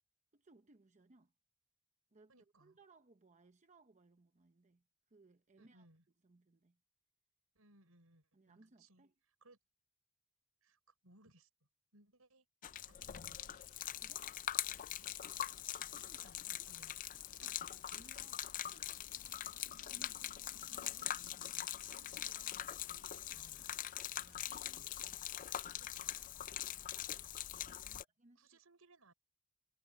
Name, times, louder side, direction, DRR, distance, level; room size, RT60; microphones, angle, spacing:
voice 1, 0.3-1.3 2.1-2.3 2.6-5.9 6.2-6.8 8.3-9.1 13.9-14.3 15.9-16.3 17.4-17.6 17.9-19.2 19.9-21.3 21.9-22.1 24.1-24.9 25.8-25.9 26.5-26.8 28.0-28.4, right 2 dB, 35° right, 0.8 m, -66 dB
voice 2, 2.3-2.8 5.6-6.0 7.5-9.0 9.4-9.6 10.6-11.5 11.9-12.5 12.9-13.7 16.0-17.9 20.7-21.7 22.2-23.8 25.8-26.3 26.6-26.8 27.7-28.0 28.4-29.1, right 2 dB, 80° right, 6.2 m, -66 dB
Gurgling / Liquid, 12.6-28.0, left 11 dB, 40° left, 0.4 m, -43 dB
sound 1, 13.3-26.3, left 9 dB, 75° left, 0.9 m, -63 dB
head